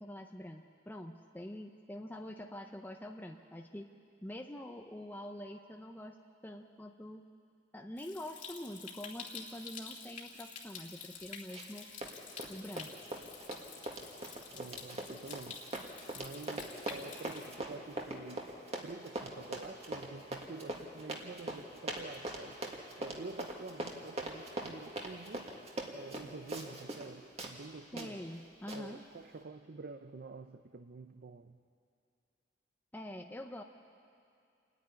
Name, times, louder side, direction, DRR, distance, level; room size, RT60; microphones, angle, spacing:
voice 1, 0.0-3.9 4.2-6.2 6.4-7.2 7.7-11.9 12.5-13.0 27.9-29.0 32.9-33.6, left 1 dB, 10° left, 3 dB, 0.7 m, -45 dB
Stream, 8.0-17.6, left 5 dB, 45° left, 2.0 m, -49 dB
Run, 11.5-11.8 12.0-27.1 27.4-27.5 28.0-28.1 28.7-28.8, right 1 dB, 35° right, 2.0 m, -41 dB
voice 2, 14.5-15.6 16.1-22.6 23.0-25.5 25.9-28.2 28.7-31.6, right 3 dB, 55° right, 8 dB, 0.6 m, -48 dB
27.5 x 9.6 x 10.0 m, 2.5 s
head